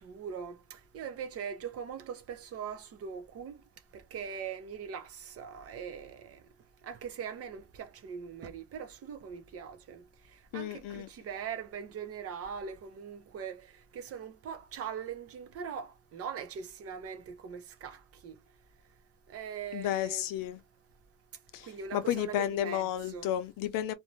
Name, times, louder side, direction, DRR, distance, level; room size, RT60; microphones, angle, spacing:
voice 1, 0.0-3.5 3.9-6.4 6.8-10.0 10.5-13.7 13.9-18.4 19.3-20.3 21.6-23.3, right 7 dB, 45° right, 0.6 m, -41 dB
voice 2, 10.5-11.1 19.7-20.6 21.5-23.9, left 11 dB, 70° left, 0.6 m, -32 dB
2.6 x 2.2 x 3.0 m
cardioid pair, 160°, 34 cm